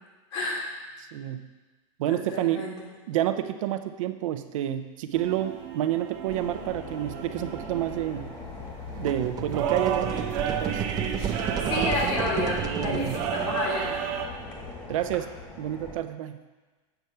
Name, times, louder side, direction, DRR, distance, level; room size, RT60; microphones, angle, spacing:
voice 1, 0.3-0.7 2.1-2.9 11.7-14.0, left 2 dB, 60° left, -3 dB, 2.7 m, -30 dB
voice 2, 1.1-1.5 2.0-2.6 3.1-8.3 9.0-10.8 11.8-11.9 12.8-13.2 14.9-15.3 15.6-16.4, right 12 dB, 80° right, 10 dB, 0.6 m, -29 dB
sound 1, 5.1-14.3, right 7 dB, 55° right, 0.9 m, -33 dB
sound 2, 6.3-15.9, left 3 dB, 25° left, 1.5 m, -41 dB
sound 3, 8.9-13.8, right 9 dB, 25° right, 0.5 m, -32 dB
8.1 x 4.7 x 5.6 m, 1.3 s
supercardioid pair, 150°, 17 cm